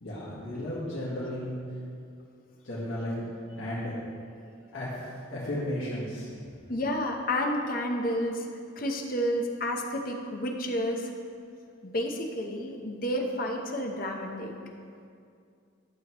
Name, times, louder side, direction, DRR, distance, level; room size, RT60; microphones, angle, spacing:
voice 1, 0.0-1.5 2.6-3.2 3.6-4.0 4.7-4.9 5.3-6.3, left 1 dB, 85° left, -9 dB, 1.9 m, -34 dB
voice 2, 6.7-8.5 8.8-11.1 11.9-14.5, equal, 45° left, 2 dB, 0.9 m, -30 dB
12.0 x 7.0 x 3.0 m, 2.3 s
head